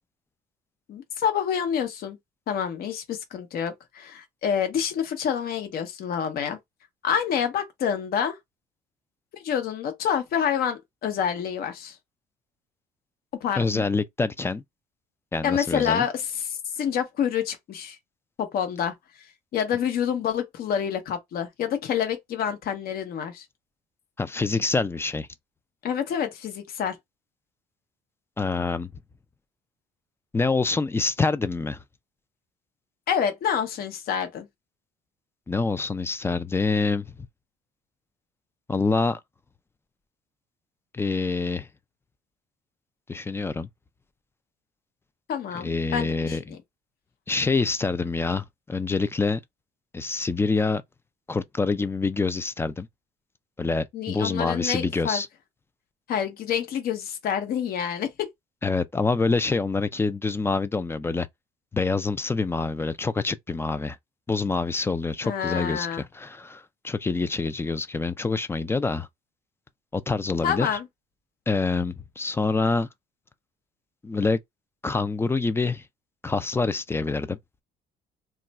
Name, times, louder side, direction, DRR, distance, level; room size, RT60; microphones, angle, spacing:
voice 1, 0.9-2.2 2.5-6.6 7.0-8.4 9.3-12.0 13.4-13.8 15.4-18.0 18.4-18.9 19.5-23.4 25.8-27.0 33.1-34.5 45.3-46.6 53.9-55.2 56.1-58.3 65.2-66.0 70.4-70.9, left 8 dB, 65° left, 0.9 m, -27 dB
voice 2, 13.5-14.6 15.3-16.0 24.2-25.3 28.4-28.9 30.3-31.8 35.5-37.1 38.7-39.2 40.9-41.7 43.1-43.7 45.5-46.6 47.3-49.4 49.9-50.8 51.3-52.9 53.6-55.3 58.6-61.3 61.7-64.0 64.3-69.1 69.9-70.8 71.5-72.9 74.0-74.4 74.8-75.8 76.2-77.4, left 3 dB, 15° left, 0.3 m, -26 dB
2.3 x 2.2 x 4.0 m
cardioid pair, 110°, 17 cm